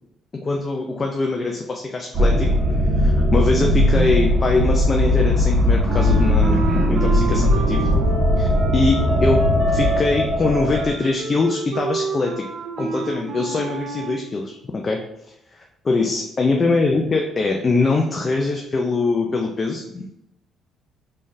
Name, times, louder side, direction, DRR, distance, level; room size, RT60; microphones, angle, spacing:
voice 1, 0.3-2.5 3.0-7.9 8.4-12.4 12.8-15.0 15.8-20.0, left 3 dB, 35° left, 1 dB, 0.5 m, -22 dB
sound 1, 2.1-10.9, left 1 dB, 40° right, 1.1 m, -18 dB
Wind instrument woodwind instrument, 5.9-14.3, right 4 dB, 65° right, 0.6 m, -31 dB
3.6 x 3.2 x 2.7 m, 0.83 s
supercardioid pair, 75°, 0 cm